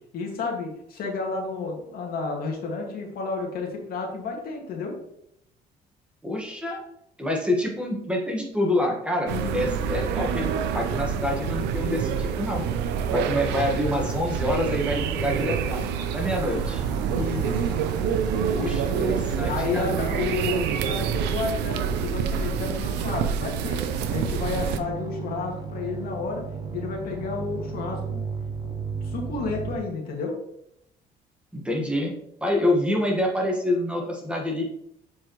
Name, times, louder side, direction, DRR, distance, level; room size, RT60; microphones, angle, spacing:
voice 1, 0.1-4.9 9.3-9.7 17.1-17.6 18.5-19.2 19.5-23.8 24.1-26.4 26.7-28.2 28.6-28.7 29.0-30.4, left 4 dB, 65° left, 0 dB, 2.0 m, -31 dB
voice 2, 6.2-6.8 7.2-12.6 13.1-15.9 16.1-16.8 18.5-19.9 31.5-32.1 32.4-34.7, left 1 dB, 5° right, -1 dB, 1.5 m, -27 dB
sound 1, 9.3-24.8, right 7 dB, 85° right, 0.6 m, -27 dB
sound 2, 15.2-29.8, right 4 dB, 25° right, 0.8 m, -37 dB
7.4 x 4.7 x 3.1 m, 0.75 s
cardioid pair, 110°, 17 cm